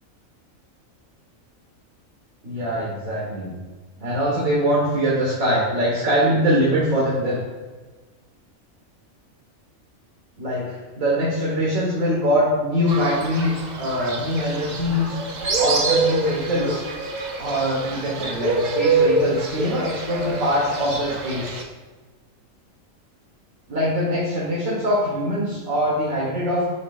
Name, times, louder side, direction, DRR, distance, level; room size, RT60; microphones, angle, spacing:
voice 1, 2.4-3.5 4.0-7.4 10.4-15.2 15.6-16.8 17.4-21.6 23.7-26.6, equal, 90° right, -6 dB, 2.0 m, -23 dB
Fowl, 12.9-21.6, right 3 dB, 40° right, 0.7 m, -25 dB
9.9 x 6.4 x 2.5 m, 1.3 s
omnidirectional pair, 1.4 m